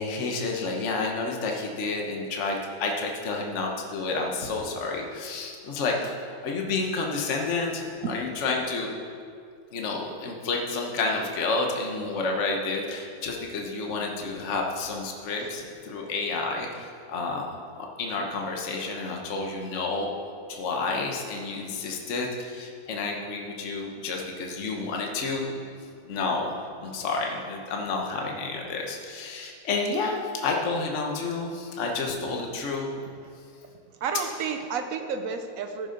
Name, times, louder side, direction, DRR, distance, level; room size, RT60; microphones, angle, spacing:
voice 1, 0.0-8.9 9.7-20.1 20.5-25.5 26.1-26.5 26.8-32.9, left 3 dB, 45° left, 1 dB, 1.3 m, -30 dB
voice 2, 13.8-14.2 15.4-15.5 34.0-35.9, right 6 dB, 55° right, 6 dB, 1.1 m, -32 dB
14.0 x 6.5 x 5.3 m, 2.3 s
omnidirectional pair, 2.0 m